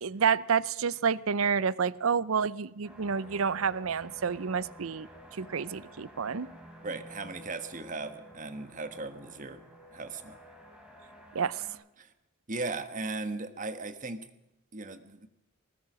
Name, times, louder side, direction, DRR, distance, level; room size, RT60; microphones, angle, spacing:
voice 1, 0.0-5.1 5.4-6.5 11.3-11.6, right 6 dB, 80° right, 20 dB, 0.6 m, -29 dB
sound 1, 2.8-11.7, equal, 5° right, 3.6 m, -51 dB
voice 2, 6.8-9.6 9.9-10.4 12.0-12.1 12.5-14.3 14.7-15.3, right 3 dB, 40° right, 10 dB, 1.5 m, -37 dB
21.5 x 19.0 x 6.3 m, 0.88 s
head